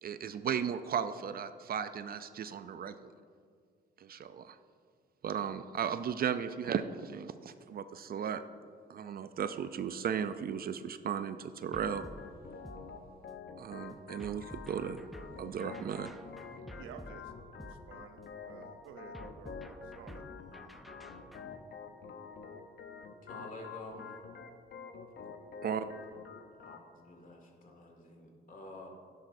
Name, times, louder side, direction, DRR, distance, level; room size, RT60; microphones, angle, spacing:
voice 1, 0.0-3.1 4.0-4.6 5.2-8.4 8.9-12.0 13.6-15.0 15.4-16.1 25.6-25.9, right 8 dB, 50° right, 11 dB, 0.4 m, -36 dB
sound 1, 11.7-13.5 14.2-18.4 19.1-21.6, equal, ahead, 0.5 m, -51 dB
Organ, 11.8-26.8, left 5 dB, 60° left, 0.8 m, -48 dB
voice 2, 16.8-17.3 17.6-18.2 18.4-20.2, right 6 dB, 85° right, 7 dB, 0.8 m, -52 dB
voice 3, 23.2-24.2 26.6-28.9, left 2 dB, 45° left, 1 dB, 2.0 m, -49 dB
11.5 x 10.5 x 2.6 m, 2.1 s
cardioid pair, 90°, 20 cm